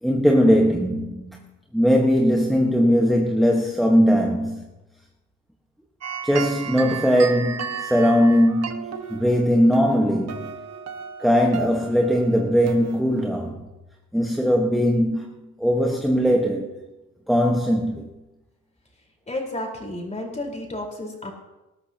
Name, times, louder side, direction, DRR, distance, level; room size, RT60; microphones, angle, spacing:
voice 1, 0.0-1.4 1.7-4.6 6.2-10.5 11.2-13.6 14.1-15.3 15.6-16.7 17.3-18.1, equal, ahead, 1.4 m, -20 dB
sound 1, 6.0-13.5, right 7 dB, 55° right, 1.5 m, -35 dB
voice 2, 19.3-21.3, left 1 dB, 25° left, 4.6 m, -31 dB
20.0 x 12.5 x 3.0 m
cardioid pair, 90°, 30 cm